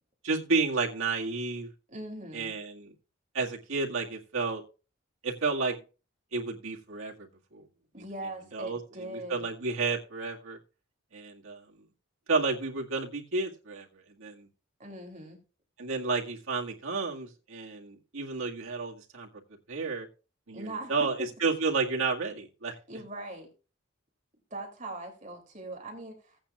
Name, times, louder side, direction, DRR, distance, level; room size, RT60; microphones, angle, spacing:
voice 1, 0.2-1.7 2.3-2.9 3.3-4.6 5.2-5.8 6.3-7.6 8.0-8.1 8.5-10.6 11.1-11.6 12.3-13.9 14.2-14.5 15.8-19.3 19.7-20.1 20.5-22.8, right 4 dB, 85° right, -1 dB, 2.0 m, -31 dB
voice 2, 1.9-2.5 7.9-9.5 14.8-15.4 20.5-21.1 22.9-23.5 24.5-26.4, right 2 dB, 35° right, 2 dB, 2.9 m, -40 dB
16.5 x 8.7 x 2.4 m, 0.34 s
head